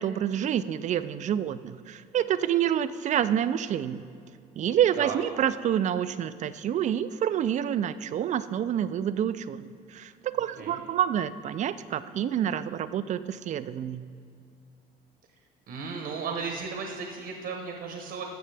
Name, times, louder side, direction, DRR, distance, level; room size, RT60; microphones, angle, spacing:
voice 1, 0.0-4.0 4.6-14.0, right 10 dB, 45° right, 14 dB, 0.4 m, -28 dB
voice 2, 15.7-18.2, right 5 dB, 70° right, 2 dB, 1.1 m, -35 dB
14.5 x 6.6 x 3.4 m, 2.4 s
cardioid pair, 110°, 17 cm